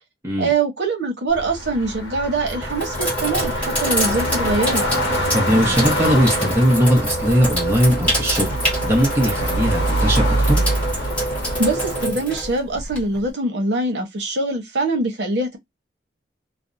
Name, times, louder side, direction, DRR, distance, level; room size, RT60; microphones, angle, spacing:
voice 1, 0.4-4.8 11.6-15.6, right 2 dB, 75° right, 0.9 m, -23 dB
sound 1, 1.3-12.0, equal, 85° left, 1.0 m, -25 dB
Sink (filling or washing), 1.3-1.7 2.4-13.3, right 1 dB, 10° left, 1.1 m, -26 dB
voice 2, 5.3-8.6 8.8-10.6, equal, 15° right, 0.8 m, -19 dB
2.5 x 2.1 x 2.4 m
head